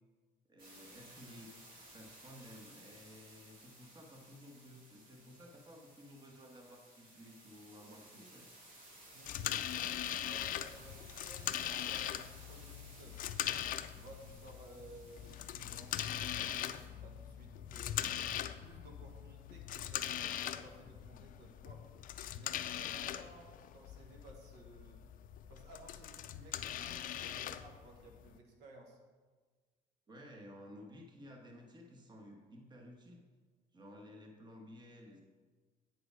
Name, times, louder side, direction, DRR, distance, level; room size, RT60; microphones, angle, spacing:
voice 1, 0.5-8.5 30.1-33.2 33.7-35.2, equal, 25° right, 1 dB, 1.2 m, -55 dB
sound 1, 0.6-16.9, right 1 dB, 55° right, 2.8 m, -58 dB
voice 2, 7.7-8.4 9.1-13.2 13.9-18.0 18.6-21.9 22.3-25.0 25.5-29.0, right 2 dB, 85° right, 1 dB, 1.4 m, -57 dB
sound 2, 9.3-28.4, left 11 dB, 55° left, 0.4 m, -41 dB
9.0 x 4.9 x 5.0 m, 1.4 s
cardioid pair, 110°, 17 cm